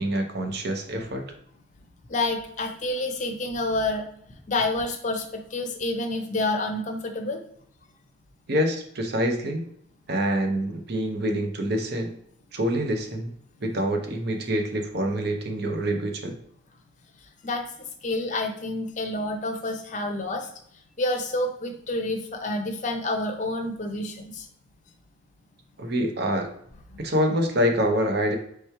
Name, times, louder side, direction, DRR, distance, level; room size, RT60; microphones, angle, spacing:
voice 1, 0.0-1.3 8.5-9.6 10.1-12.1 12.5-13.3 13.6-16.4 25.8-26.5 27.0-28.3, equal, 50° right, 4 dB, 0.7 m, -26 dB
voice 2, 2.1-4.0 4.5-7.4 17.4-17.6 18.0-20.5 21.0-24.5 26.9-27.0, left 2 dB, 35° left, 4 dB, 0.6 m, -28 dB
3.3 x 3.1 x 4.5 m, 0.70 s
head